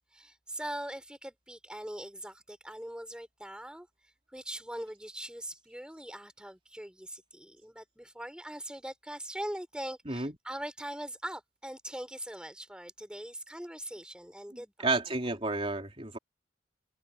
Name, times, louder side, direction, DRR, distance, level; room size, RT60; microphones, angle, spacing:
voice 1, 0.1-3.9 4.3-15.0, right 1 dB, 5° right, 4.5 m, -41 dB
voice 2, 14.8-16.2, right 3 dB, 30° right, 3.3 m, -31 dB
head